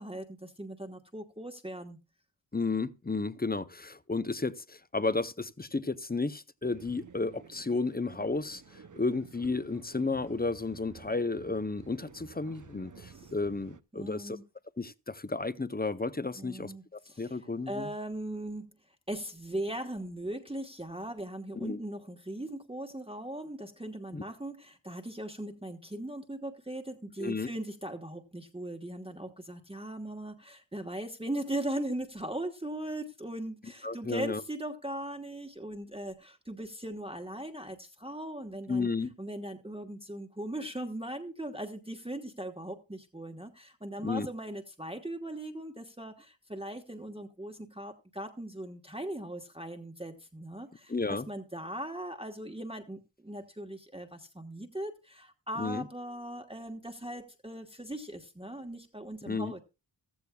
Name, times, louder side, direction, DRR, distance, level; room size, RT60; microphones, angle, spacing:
voice 1, 0.0-2.0 13.1-13.3 13.9-14.4 16.4-38.9 39.2-59.6, right 1 dB, 10° right, 1.2 m, -39 dB
voice 2, 2.5-14.4 14.8-17.9 21.6-21.8 24.1-24.2 27.2-27.5 33.8-34.4 38.7-39.1 44.0-44.3 50.9-51.3 55.6-55.8 59.3-59.5, left 3 dB, 20° left, 0.6 m, -33 dB
sound 1, 6.6-13.8, right 6 dB, 45° right, 0.6 m, -53 dB
15.0 x 14.5 x 2.3 m
wide cardioid pair, 75°, 46 cm